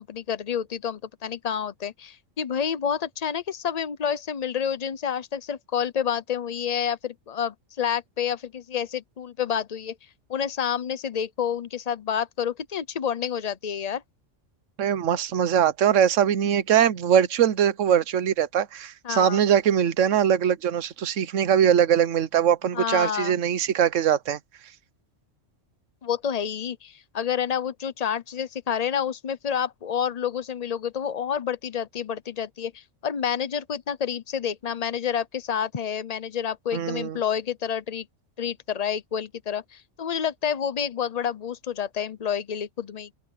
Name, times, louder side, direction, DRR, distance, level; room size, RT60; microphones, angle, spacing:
voice 1, 0.0-10.0 10.3-14.0 19.0-19.4 22.7-23.4 26.0-38.1 38.4-43.2, left 8 dB, 35° left, 0.8 m, -29 dB
voice 2, 14.8-24.4 36.7-37.2, right 9 dB, 85° right, 1.1 m, -22 dB
open air
omnidirectional pair, 1.3 m